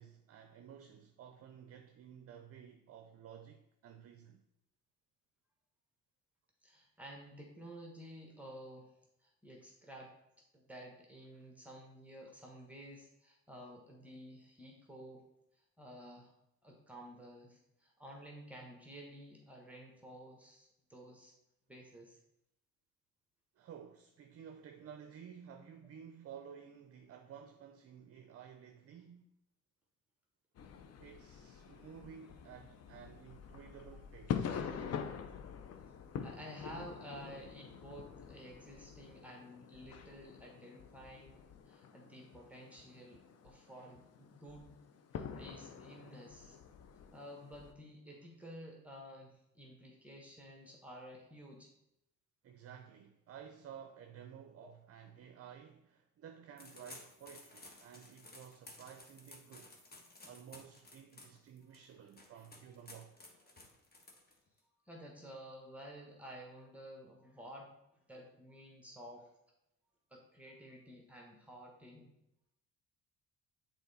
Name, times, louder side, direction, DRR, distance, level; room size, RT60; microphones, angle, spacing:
voice 1, 0.0-4.4 23.6-29.3 31.0-34.5 43.7-43.9 46.1-46.2 52.4-59.7 60.2-63.1, right 8 dB, 45° right, 0.6 m, -53 dB
voice 2, 6.6-8.9 9.2-10.1 10.5-15.2 15.8-16.3 16.6-21.3 21.7-22.2 36.2-44.7 45.1-46.6 47.1-51.7 54.6-54.7 64.9-69.3 70.1-72.1, equal, 5° right, 1.3 m, -52 dB
sound 1, 30.6-47.7, left 7 dB, 50° left, 0.7 m, -46 dB
sound 2, 56.6-64.6, left 2 dB, 30° left, 1.3 m, -56 dB
7.0 x 3.8 x 4.1 m
cardioid pair, 85°, 33 cm